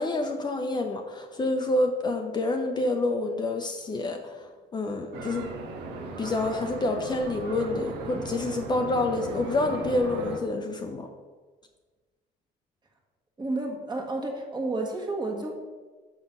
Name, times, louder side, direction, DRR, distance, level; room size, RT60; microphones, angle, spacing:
voice 1, 0.0-5.5 6.2-11.1, left 2 dB, 25° left, 4 dB, 0.6 m, -28 dB
sound 1, 5.1-10.4, right 3 dB, 90° right, 1.0 m, -37 dB
voice 2, 13.4-15.5, right 2 dB, 25° right, 1 dB, 1.5 m, -31 dB
6.0 x 5.9 x 5.3 m, 1.4 s
cardioid pair, 110°, 17 cm